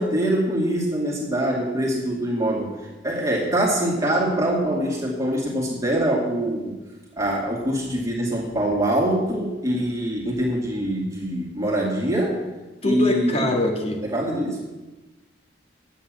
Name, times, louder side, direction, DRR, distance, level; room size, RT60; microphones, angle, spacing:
voice 1, 0.0-6.8 7.2-12.4 12.8-13.5 14.0-14.6, right 1 dB, 20° right, -4 dB, 2.3 m, -24 dB
voice 2, 12.8-14.0, left 1 dB, 35° left, 2 dB, 1.8 m, -23 dB
11.0 x 8.9 x 7.5 m, 1.1 s
head